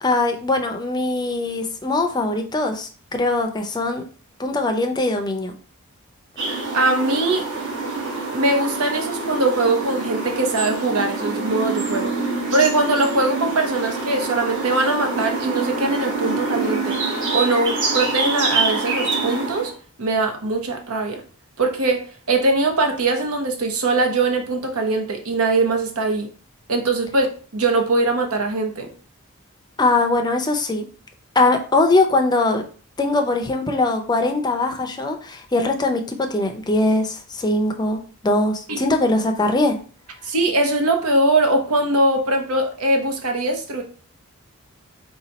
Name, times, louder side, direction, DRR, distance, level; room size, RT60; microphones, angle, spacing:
voice 1, 0.0-4.0 4.4-5.5 29.8-30.9 31.4-32.6 33.0-39.8, left 2 dB, 20° left, 4 dB, 0.5 m, -21 dB
sound 1, 6.4-19.7, right 3 dB, 60° right, 1.2 m, -26 dB
voice 2, 6.7-7.5 8.3-12.1 12.5-17.0 17.3-19.7 20.0-21.2 21.6-26.3 26.7-27.3 27.5-28.9 38.7-38.8 40.2-43.8, right 2 dB, 80° right, 4 dB, 0.9 m, -21 dB
4.0 x 2.3 x 4.0 m, 0.40 s
head